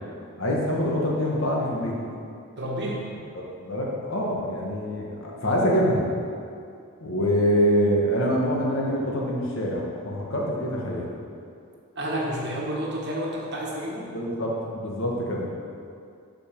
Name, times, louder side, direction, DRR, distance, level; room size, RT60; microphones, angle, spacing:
voice 1, 0.4-1.9 3.3-6.1 7.0-11.1 14.1-15.5, equal, 60° left, -3 dB, 1.4 m, -25 dB
voice 2, 2.6-3.1 11.9-14.2, equal, 50° right, -3 dB, 1.4 m, -30 dB
7.9 x 5.3 x 5.3 m, 2.4 s
head